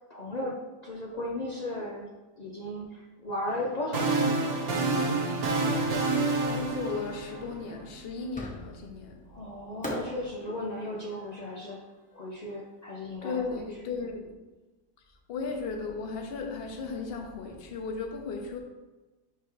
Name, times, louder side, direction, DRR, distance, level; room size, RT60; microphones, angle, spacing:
voice 1, 0.1-0.6 0.8-2.1 2.4-4.5 9.3-11.8 12.1-13.4, left 1 dB, 80° left, -2 dB, 0.3 m, -35 dB
sound 1, 3.5-7.7, right 3 dB, 65° right, 1.4 m, -28 dB
voice 2, 6.4-9.4 13.2-14.3 15.3-18.6, left 4 dB, 45° left, 3 dB, 0.9 m, -35 dB
Fireworks, 8.3-9.0 9.8-12.9, equal, 5° left, 0.7 m, -41 dB
10.0 x 3.4 x 3.1 m, 1.2 s
omnidirectional pair, 1.7 m